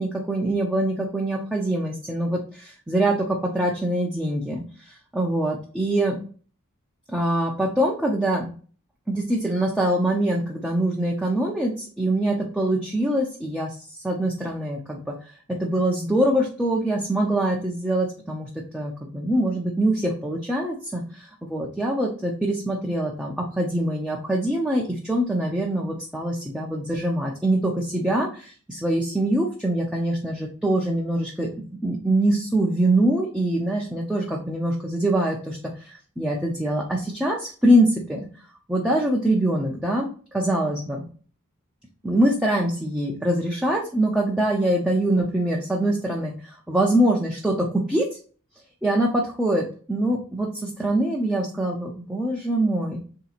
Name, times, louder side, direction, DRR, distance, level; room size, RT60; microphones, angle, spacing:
voice 1, 0.0-6.2 7.1-8.5 9.1-15.3 15.6-31.5 31.8-38.3 38.7-40.1 40.3-41.0 42.0-48.1 48.8-53.0, right 1 dB, 5° right, -3 dB, 0.5 m, -24 dB
3.3 x 2.8 x 4.0 m, 0.41 s
head